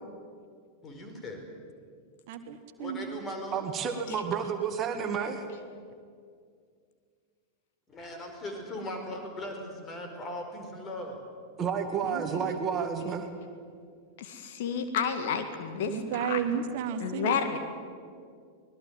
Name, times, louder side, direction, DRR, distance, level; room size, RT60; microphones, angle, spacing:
voice 1, 0.8-1.4 2.8-3.6 7.9-11.2 15.7-15.8 16.1-16.2, left 1 dB, 25° left, 4 dB, 5.1 m, -39 dB
voice 2, 2.3-3.2 12.1-12.5 15.9-17.4, right 8 dB, 50° right, 10 dB, 1.4 m, -33 dB
voice 3, 3.5-5.5 11.6-13.3, right 6 dB, 30° right, 5 dB, 2.1 m, -30 dB
voice 4, 14.2-16.4 17.0-17.6, left 7 dB, 55° left, 7 dB, 2.0 m, -31 dB
25.0 x 19.5 x 7.8 m, 2.2 s
figure-of-eight pair, 90°, 0 cm